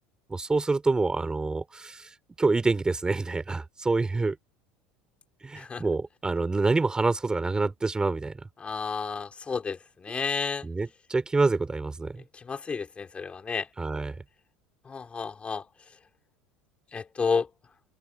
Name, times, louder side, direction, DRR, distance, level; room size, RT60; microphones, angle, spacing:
voice 1, 0.3-2.1 2.4-4.4 5.4-8.3 10.6-12.2 13.8-14.2, right 3 dB, 15° right, 3.5 m, -26 dB
voice 2, 8.6-10.7 12.3-13.7 14.9-15.7 16.9-17.5, left 5 dB, 25° left, 3.7 m, -31 dB
open air
hypercardioid pair, 90°, 5 cm